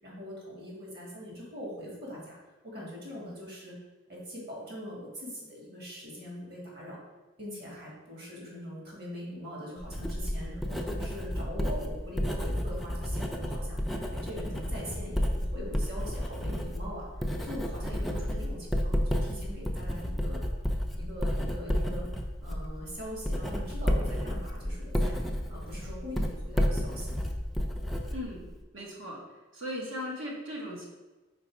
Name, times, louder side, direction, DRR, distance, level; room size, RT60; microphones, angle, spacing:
voice 1, 0.0-2.4 2.6-3.7 4.1-7.0 7.4-17.1 17.4-20.4 20.9-22.1 22.4-25.2 25.5-27.2, equal, 50° right, -3 dB, 2.0 m, -42 dB
Writing, 9.8-28.6, equal, ahead, 0.4 m, -31 dB
voice 2, 28.1-29.2 29.5-30.9, equal, 75° right, -2 dB, 1.6 m, -38 dB
5.2 x 4.2 x 4.7 m, 1.2 s
head